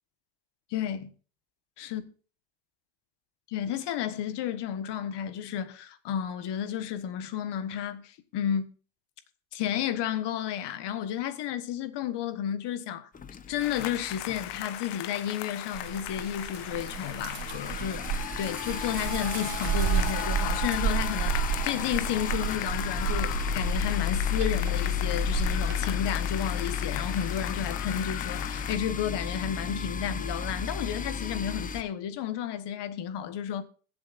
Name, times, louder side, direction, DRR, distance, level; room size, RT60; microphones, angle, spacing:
voice 1, 0.7-1.1 1.8-2.0 3.5-8.7 9.5-13.1 13.5-33.6, left 9 dB, 55° left, 1.5 m, -32 dB
sound 1, 13.1-14.9 15.2-15.4 15.7-15.8 16.0-31.8, left 7 dB, 15° left, 0.6 m, -34 dB
sound 2, 13.6-28.8, left 14 dB, 75° left, 1.2 m, -37 dB
sound 3, 15.7-25.9, right 8 dB, 60° right, 1.9 m, -32 dB
22.0 x 7.8 x 2.6 m
cardioid pair, 145°, 49 cm